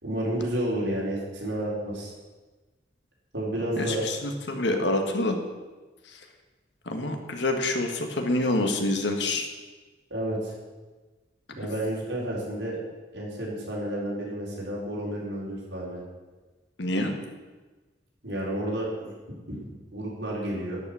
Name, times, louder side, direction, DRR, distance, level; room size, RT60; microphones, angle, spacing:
voice 1, 0.0-2.1 3.3-4.0 10.1-10.5 11.5-12.8 13.1-16.0 18.2-19.1 19.5-20.8, right 1 dB, 80° right, -5 dB, 4.4 m, -31 dB
voice 2, 3.8-5.4 6.0-6.2 6.8-9.5 16.8-17.2, left 2 dB, 70° left, 4 dB, 1.6 m, -27 dB
11.5 x 6.2 x 8.4 m, 1.3 s
head